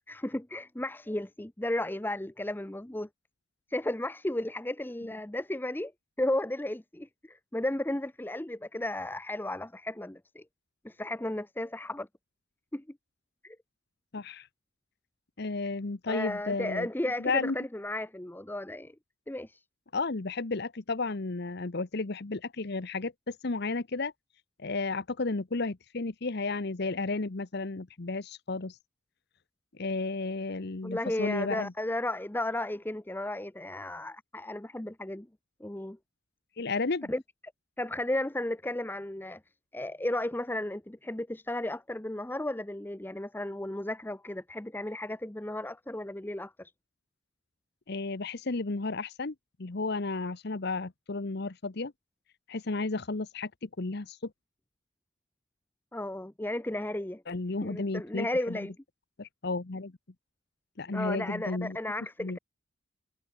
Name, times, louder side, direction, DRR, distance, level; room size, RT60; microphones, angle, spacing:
voice 1, 0.1-3.1 3.7-5.9 6.2-10.4 10.8-12.1 12.7-13.0 13.4-13.6 16.1-18.9 19.3-19.6 30.8-35.3 35.6-36.0 37.1-37.2 37.8-39.4 39.7-46.7 55.9-57.2 57.6-58.7 60.9-62.4, left 1 dB, 10° left, 0.7 m, -34 dB
voice 2, 14.1-14.5 15.4-16.9 17.2-17.6 19.9-24.1 24.6-28.8 29.7-31.7 36.6-37.1 47.9-51.9 52.5-54.3 57.3-58.6 59.2-59.9 60.8-61.8 62.2-62.4, left 3 dB, 55° left, 0.9 m, -33 dB
head